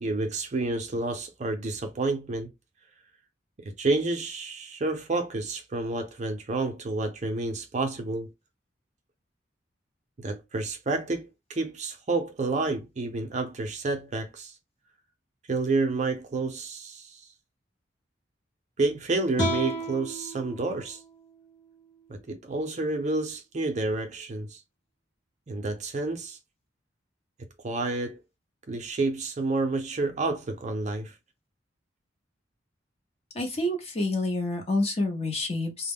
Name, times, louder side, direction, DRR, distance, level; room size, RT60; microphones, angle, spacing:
voice 1, 0.0-2.5 3.6-8.3 10.2-14.5 15.5-17.2 18.8-21.0 22.1-24.6 25.5-26.4 27.6-28.2 28.7-31.1, right 3 dB, 40° right, 0.5 m, -29 dB
sound 1, 19.4-22.5, right 1 dB, 70° left, 0.9 m, -34 dB
voice 2, 33.3-35.9, left 2 dB, 35° left, 0.7 m, -28 dB
2.2 x 2.0 x 3.3 m
head